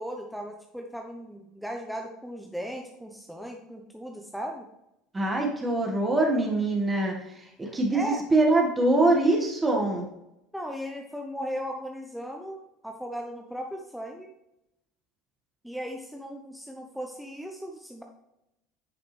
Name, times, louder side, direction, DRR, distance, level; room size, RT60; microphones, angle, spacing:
voice 1, 0.0-4.6 7.6-8.2 10.5-14.3 15.6-18.0, equal, ahead, 2 dB, 1.0 m, -37 dB
voice 2, 5.1-10.1, right 2 dB, 20° right, 1 dB, 1.9 m, -24 dB
10.5 x 5.7 x 3.4 m, 0.87 s
hypercardioid pair, 75°, 0 cm